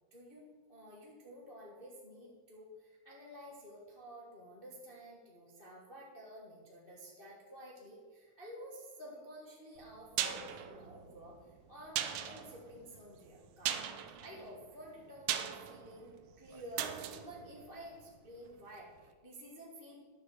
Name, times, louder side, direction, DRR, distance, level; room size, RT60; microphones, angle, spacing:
voice 1, 0.1-13.9 14.2-20.0, equal, 70° left, -3 dB, 0.5 m, -51 dB
sound 1, 9.8-18.6 18.9-19.0, right 10 dB, 90° right, 1.6 m, -40 dB
10.5 x 6.4 x 7.8 m, 1.5 s
omnidirectional pair, 4.3 m